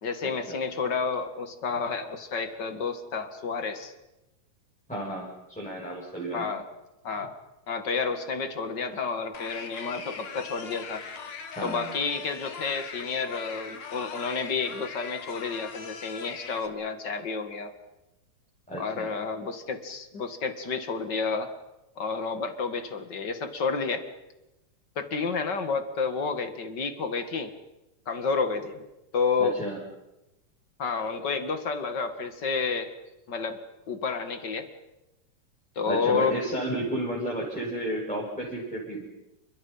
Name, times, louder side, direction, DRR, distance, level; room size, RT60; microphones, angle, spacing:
voice 1, 0.0-3.9 6.3-6.6 7.0-7.3 7.7-11.0 11.6-17.7 18.8-21.5 22.0-24.0 25.0-27.5 28.1-28.8 29.1-29.6 30.8-32.9 33.3-33.6 33.9-34.7 35.8-36.4, left 5 dB, 35° left, 8 dB, 2.2 m, -30 dB
voice 2, 4.9-6.5 11.5-11.9 18.7-19.1 29.4-29.8 35.9-39.1, right 1 dB, ahead, -4 dB, 6.3 m, -32 dB
sound 1, 9.3-16.7, left 6 dB, 60° left, 3.2 m, -40 dB
29.5 x 27.0 x 5.7 m, 0.96 s
omnidirectional pair, 3.7 m